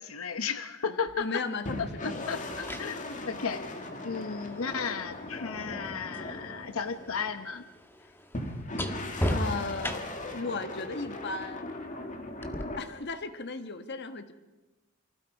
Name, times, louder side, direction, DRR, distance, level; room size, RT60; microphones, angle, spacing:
voice 1, 0.0-1.4 1.8-3.6 4.0-7.6, left 6 dB, 85° left, 10 dB, 1.0 m, -34 dB
voice 2, 0.9-2.4 9.3-11.7 12.8-14.3, left 3 dB, 55° left, 9 dB, 1.4 m, -36 dB
sound 1, 1.1-1.2 2.3-6.3 6.6-10.4 12.4-12.6, equal, 10° left, 1.5 m, -37 dB
sound 2, 1.6-7.6 8.3-12.8, left 2 dB, 40° left, 2.1 m, -39 dB
28.5 x 25.0 x 4.8 m, 1.1 s
head